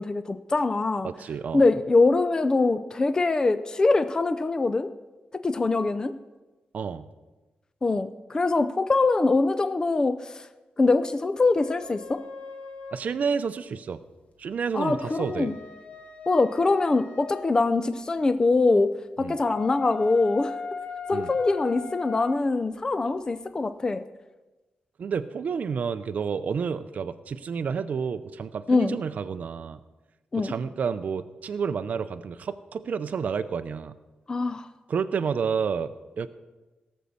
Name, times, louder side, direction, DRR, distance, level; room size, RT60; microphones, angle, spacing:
voice 1, 0.0-1.1 1.5-4.9 5.4-6.1 7.8-10.5 10.8-12.2 14.7-15.6 16.3-18.9 19.2-20.5 21.1-24.0 28.7-29.0 30.3-30.5 34.3-34.7, left 3 dB, 25° left, 11 dB, 0.5 m, -23 dB
voice 2, 1.0-1.6 6.7-7.1 12.9-14.0 14.4-15.5 19.2-19.4 21.1-21.3 25.0-29.8 30.3-33.9 34.9-36.3, right 6 dB, 55° right, 10 dB, 0.5 m, -30 dB
sound 1, 11.6-13.1 14.7-17.5 19.4-22.4, left 5 dB, 50° left, 1.5 m, -39 dB
17.5 x 6.3 x 7.0 m, 1.2 s
wide cardioid pair, 150°, 3 cm